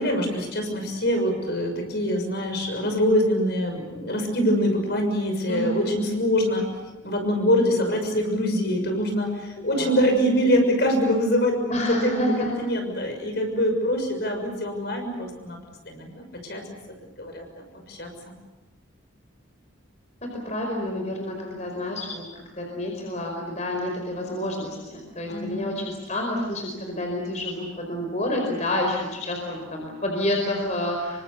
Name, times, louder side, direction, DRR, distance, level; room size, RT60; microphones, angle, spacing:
voice 1, 0.0-6.7 7.0-15.6 15.8-16.6 17.2-18.1 25.2-25.8, equal, 55° left, 4 dB, 6.4 m, -24 dB
voice 2, 5.5-5.9 9.6-9.9 11.7-12.5 20.2-31.2, left 1 dB, 35° left, 1 dB, 5.0 m, -29 dB
28.0 x 24.5 x 7.0 m, 1.1 s
head